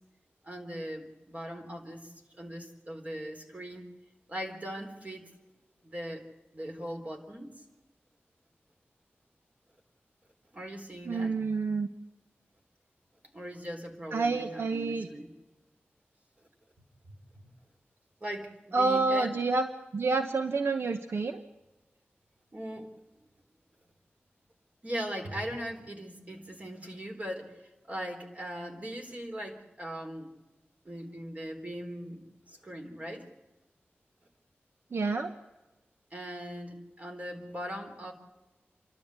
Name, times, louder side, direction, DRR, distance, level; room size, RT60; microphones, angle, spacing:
voice 1, 0.4-3.9 4.3-5.3 5.8-6.2 6.5-7.5 10.5-11.3 13.3-15.3 17.3-17.5 18.2-19.4 22.5-23.0 24.8-30.3 30.8-33.2 36.1-38.1, equal, 35° right, 3 dB, 4.0 m, -40 dB
voice 2, 11.1-11.9 14.1-15.1 18.7-19.7 19.9-21.4 34.9-35.3, right 3 dB, 75° right, 7 dB, 1.0 m, -28 dB
29.5 x 12.5 x 8.1 m, 1.1 s
wide cardioid pair, 100°, 4 cm